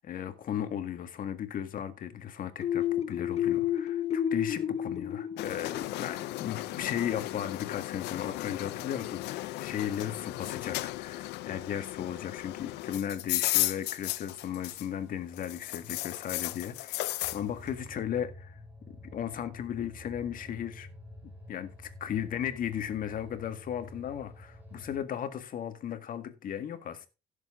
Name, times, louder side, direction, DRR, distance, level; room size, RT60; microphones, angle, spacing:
voice 1, 0.0-18.6 19.0-20.9 21.5-27.1, left 9 dB, 55° left, 1.8 m, -36 dB
sound 1, 2.6-6.3, left 10 dB, 40° left, 0.8 m, -31 dB
sound 2, 5.4-15.0 15.3-17.4, left 18 dB, 85° left, 0.6 m, -35 dB
sound 3, 17.2-25.0, left 1 dB, 10° right, 3.9 m, -49 dB
16.0 x 7.2 x 3.7 m
cardioid pair, 110°, 17 cm